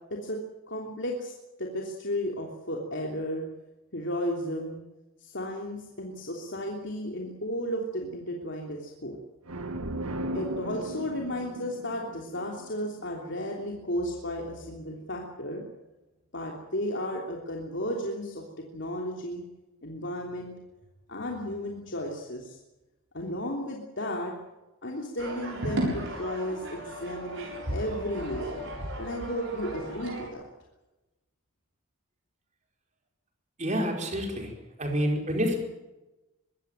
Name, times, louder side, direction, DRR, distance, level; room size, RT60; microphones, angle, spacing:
voice 1, 0.7-1.3 1.6-3.4 3.9-4.8 5.2-9.2 10.3-15.6 16.3-18.4 18.7-19.4 19.8-20.5 21.1-22.6 23.1-24.3 24.8-28.7 29.0-30.4, equal, 55° left, 0 dB, 3.2 m, -34 dB
sound 1, 9.5-13.1, right 1 dB, 85° right, 1.9 m, -36 dB
sound 2, 25.2-30.3, right 1 dB, 60° right, 7.4 m, -35 dB
voice 2, 33.6-34.5 34.8-35.6, equal, 30° right, 3 dB, 4.9 m, -28 dB
23.5 x 16.5 x 9.2 m, 1.0 s
head